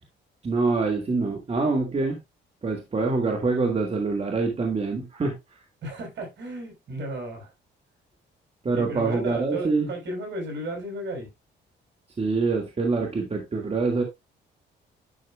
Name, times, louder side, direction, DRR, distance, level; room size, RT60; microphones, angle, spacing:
voice 1, 0.4-2.2 2.6-5.4 8.6-9.9 12.2-14.0, right 3 dB, 30° right, 1.9 m, -25 dB
voice 2, 5.8-7.5 8.7-11.3, right 1 dB, 65° right, 5.5 m, -34 dB
10.5 x 6.6 x 2.3 m
cardioid pair, 90°, 20 cm